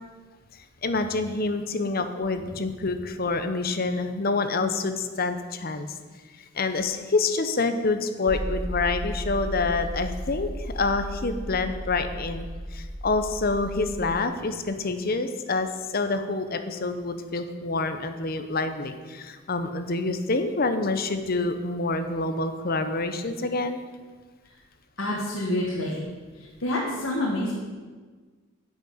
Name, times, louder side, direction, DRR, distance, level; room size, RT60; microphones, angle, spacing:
voice 1, 0.8-6.0 6.5-23.8, left 3 dB, 45° left, 9 dB, 0.9 m, -27 dB
sound 1, 8.3-14.2, equal, 10° right, 0.7 m, -34 dB
voice 2, 25.0-26.0 26.4-27.5, left 1 dB, 65° left, -4 dB, 1.9 m, -28 dB
10.5 x 6.5 x 8.7 m, 1.4 s
head